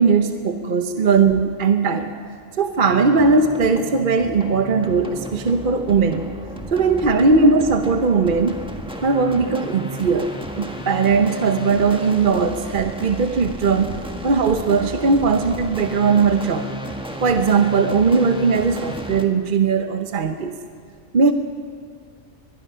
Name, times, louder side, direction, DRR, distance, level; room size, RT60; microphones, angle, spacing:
voice 1, 0.0-2.1 2.6-6.2 6.7-8.6 9.0-10.3 10.6-14.0 14.2-16.7 17.2-20.5 21.1-21.3, right 4 dB, 45° right, 7 dB, 0.9 m, -19 dB
sound 1, 2.8-19.2, right 1 dB, 5° right, 1.3 m, -33 dB
23.5 x 21.0 x 5.6 m, 2.1 s
omnidirectional pair, 1.4 m